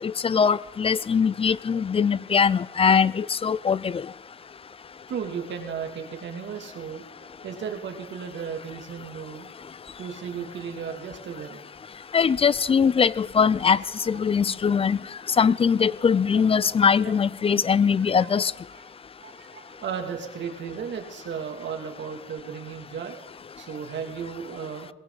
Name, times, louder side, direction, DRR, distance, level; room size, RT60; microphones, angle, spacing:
voice 1, 0.0-4.0 12.1-13.8 14.1-15.0 15.4-18.5, left 6 dB, 30° left, 0.4 m, -21 dB
voice 2, 5.1-9.5 10.0-11.6 16.3-16.4 17.0-17.1 18.0-18.4 18.7-18.8 19.2-23.2 23.6-24.9, right 7 dB, 65° right, 2.7 m, -35 dB
21.0 x 16.5 x 4.1 m
cardioid pair, 90°, 20 cm